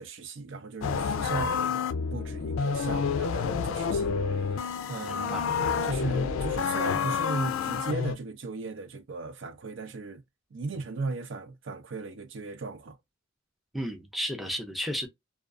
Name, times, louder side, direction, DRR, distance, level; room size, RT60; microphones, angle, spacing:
voice 1, 0.0-4.2 4.9-10.2 10.5-13.0, right 3 dB, 65° right, 0.5 m, -37 dB
sound 1, 0.8-8.1, left 6 dB, 85° left, 0.3 m, -29 dB
voice 2, 5.0-5.4 10.7-10.8 13.7-15.1, equal, ahead, 0.5 m, -33 dB
2.4 x 2.3 x 2.3 m
head